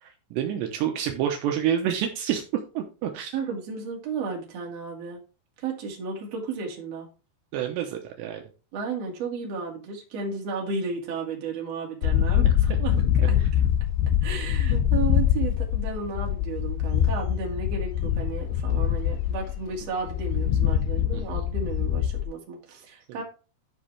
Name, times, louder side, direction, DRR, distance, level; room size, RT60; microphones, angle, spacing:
voice 1, 0.0-3.3 7.5-8.4 12.4-12.5 13.4-13.5 21.1-21.4, right 10 dB, 80° right, 3 dB, 2.9 m, -28 dB
voice 2, 3.3-5.2 5.6-7.1 8.7-12.9 13.3-13.4 14.2-23.2, right 4 dB, 40° right, 0 dB, 2.8 m, -33 dB
sound 1, 12.0-22.2, left 10 dB, 80° left, 2.5 m, -24 dB
12.5 x 5.4 x 3.4 m, 0.33 s
omnidirectional pair, 5.3 m